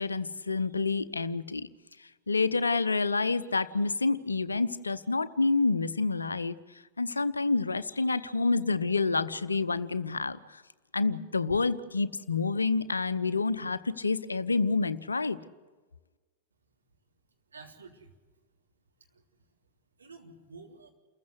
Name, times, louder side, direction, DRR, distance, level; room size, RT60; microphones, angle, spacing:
voice 1, 0.0-1.7 2.3-6.6 7.0-10.6 10.9-15.4, left 3 dB, 80° left, 16 dB, 0.7 m, -28 dB
voice 2, 17.5-18.2 19.1-19.6 20.0-20.9, right 4 dB, 75° right, 1 dB, 3.4 m, -51 dB
29.0 x 15.0 x 8.2 m, 1.4 s
figure-of-eight pair, 90°, 0 cm